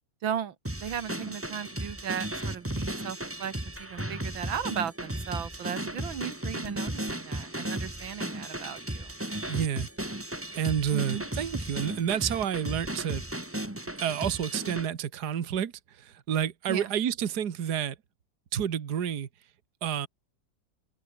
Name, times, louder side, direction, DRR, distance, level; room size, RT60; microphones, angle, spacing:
voice 1, 0.2-9.2 10.9-11.3 16.7-16.9, right 8 dB, 80° right, 2.2 m, -36 dB
sound 1, 0.6-14.9, right 1 dB, 5° right, 1.8 m, -35 dB
voice 2, 9.5-9.9 10.5-13.2 14.0-18.0 18.5-19.3 19.8-20.1, right 9 dB, 55° right, 1.9 m, -29 dB
omnidirectional pair, 2.1 m